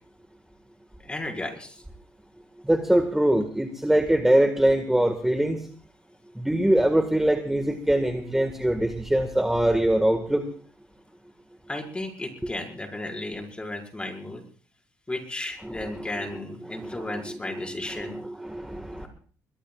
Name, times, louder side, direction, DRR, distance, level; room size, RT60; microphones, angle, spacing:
voice 1, 1.0-1.8 11.7-14.4 15.1-18.2, left 2 dB, 15° left, 1 dB, 5.4 m, -34 dB
voice 2, 2.6-5.6 6.4-10.4 15.6-16.4 16.7-19.1, right 1 dB, 5° right, 5 dB, 1.8 m, -23 dB
23.0 x 21.5 x 2.5 m, 0.43 s
cardioid pair, 95°, 7 cm